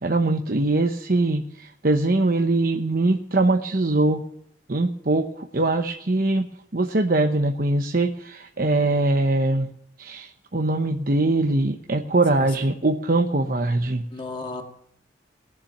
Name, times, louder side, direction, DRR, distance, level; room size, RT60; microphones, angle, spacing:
voice 1, 0.0-4.2 4.7-6.5 6.7-9.7 10.0-14.0, right 2 dB, 50° right, 5 dB, 0.9 m, -22 dB
voice 2, 12.3-12.7 14.1-14.6, left 3 dB, 25° left, 2 dB, 2.2 m, -35 dB
19.0 x 7.3 x 9.2 m, 0.69 s
head